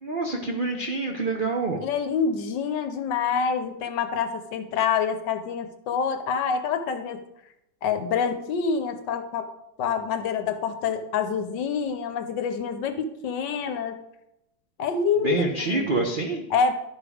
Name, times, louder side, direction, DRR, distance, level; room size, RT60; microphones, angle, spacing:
voice 1, 0.0-1.8 15.2-16.4, right 3 dB, 80° right, 2 dB, 0.4 m, -26 dB
voice 2, 1.8-7.2 7.8-9.5 9.8-14.0 14.8-16.1 16.5-16.7, left 6 dB, 70° left, 8 dB, 1.3 m, -27 dB
11.5 x 5.1 x 4.9 m, 0.86 s
omnidirectional pair, 2.2 m